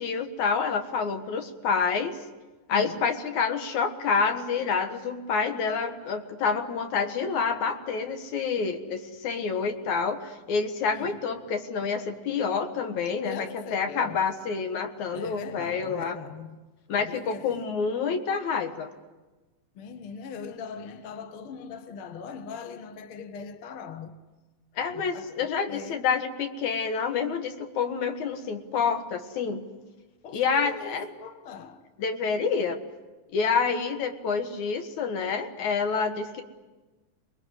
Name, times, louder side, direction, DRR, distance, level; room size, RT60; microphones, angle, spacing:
voice 1, 0.0-2.2 2.7-16.2 16.9-18.9 24.8-29.7 30.3-31.1 32.0-32.8 33.3-36.4, left 5 dB, 65° left, 2.9 m, -28 dB
voice 2, 2.7-3.0 10.9-11.2 13.2-14.2 15.1-16.6 17.0-17.6 19.8-24.2 24.9-26.0 30.2-31.8, left 5 dB, 50° left, 1.9 m, -40 dB
27.0 x 21.5 x 9.9 m
omnidirectional pair, 3.7 m